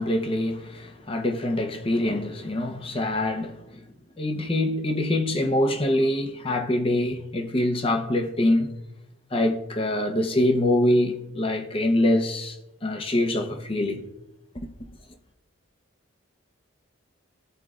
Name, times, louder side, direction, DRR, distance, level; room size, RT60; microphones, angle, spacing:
voice 1, 0.0-3.8 4.2-8.7 9.3-12.6 12.8-14.0 14.5-14.7, left 1 dB, 25° left, 0.7 m, -24 dB
13.5 x 4.7 x 2.4 m
head